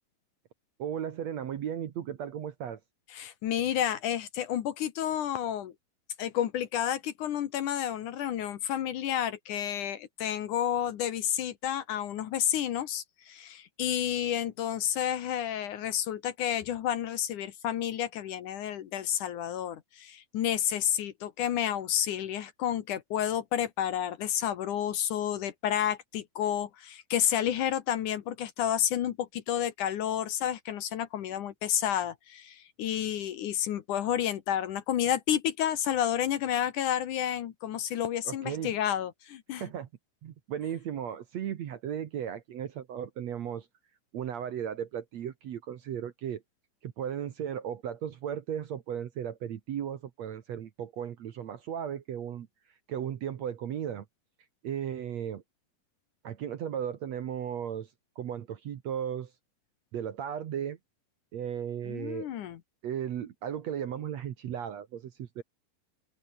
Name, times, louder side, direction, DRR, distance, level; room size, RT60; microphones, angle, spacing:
voice 1, 0.8-2.8 38.3-38.7 39.6-39.9 40.2-43.7 44.1-46.4 46.8-52.5 52.9-54.0 54.6-55.4 56.2-57.9 58.2-59.3 59.9-60.8 61.3-62.3 62.8-65.4, right 9 dB, 60° right, 2.1 m, -35 dB
voice 2, 3.1-5.7 6.2-39.7 61.9-62.6, left 10 dB, 65° left, 2.5 m, -30 dB
omnidirectional pair, 4.2 m